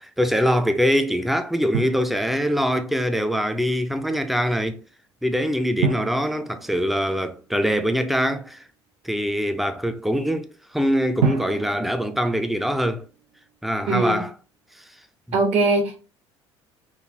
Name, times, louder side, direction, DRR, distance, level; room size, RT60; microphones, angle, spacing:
voice 1, 0.0-4.8 5.2-8.6 9.0-13.0 13.6-14.3, equal, ahead, 0.4 m, -23 dB
Drum, 1.7-2.8 5.8-7.7 11.2-13.2, right 5 dB, 70° right, 0.5 m, -30 dB
voice 2, 13.9-14.2 15.3-16.0, right 3 dB, 45° right, 1.1 m, -21 dB
3.2 x 2.4 x 2.6 m
figure-of-eight pair, 60°, 15 cm